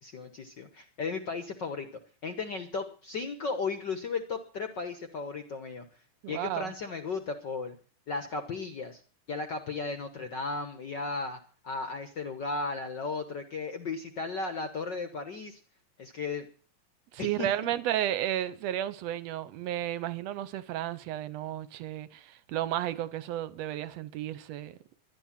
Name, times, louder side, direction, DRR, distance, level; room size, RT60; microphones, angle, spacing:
voice 1, 0.0-1.9 2.2-5.8 6.3-7.7 8.1-9.0 9.3-11.4 11.6-15.6 16.0-16.5 17.2-17.5, left 4 dB, 65° left, 1.1 m, -35 dB
voice 2, 6.2-6.7 17.1-24.8, right 12 dB, 70° right, 1.7 m, -33 dB
12.0 x 11.0 x 7.3 m
omnidirectional pair, 3.5 m